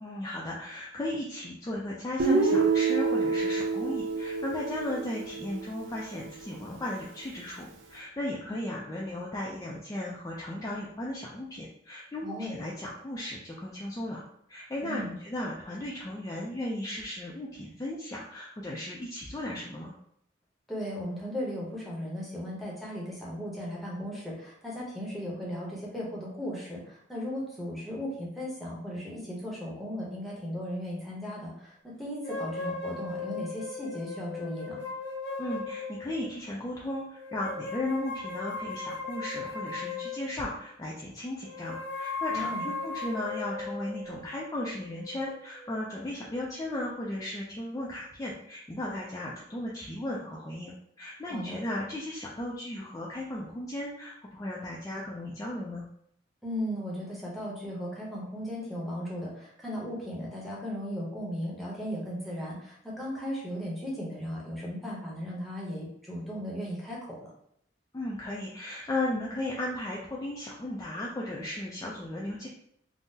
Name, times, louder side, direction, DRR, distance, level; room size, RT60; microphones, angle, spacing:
voice 1, 0.0-19.9 35.4-55.8 67.9-72.5, left 1 dB, 20° left, -5 dB, 0.3 m, -36 dB
Guitar, 2.2-6.2, right 4 dB, 90° right, 0.4 m, -27 dB
voice 2, 12.2-12.5 14.8-15.1 20.7-34.8 42.3-42.6 51.3-51.6 56.4-67.3, equal, ahead, -6 dB, 0.8 m, -36 dB
sound 1, 32.2-36.4 37.2-40.6 41.4-45.8, left 4 dB, 80° left, 0.9 m, -37 dB
3.6 x 2.0 x 2.6 m, 0.72 s
head